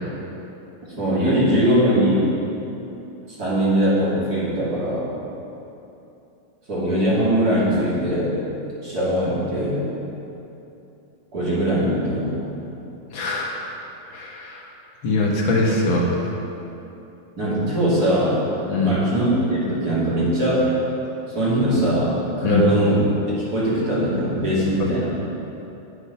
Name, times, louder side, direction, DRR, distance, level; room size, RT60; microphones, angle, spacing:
voice 1, 0.8-2.3 3.3-5.1 6.7-8.4 8.8-9.8 11.3-12.5 17.4-18.5 18.8-20.7 21.3-23.1 23.5-25.1, right 1 dB, 50° right, -9 dB, 3.0 m, -21 dB
voice 2, 13.1-13.5 14.1-14.7 15.0-16.1 18.7-18.9 22.4-22.6, left 2 dB, 75° left, -2 dB, 2.0 m, -21 dB
9.7 x 6.8 x 5.5 m, 2.9 s
omnidirectional pair, 2.2 m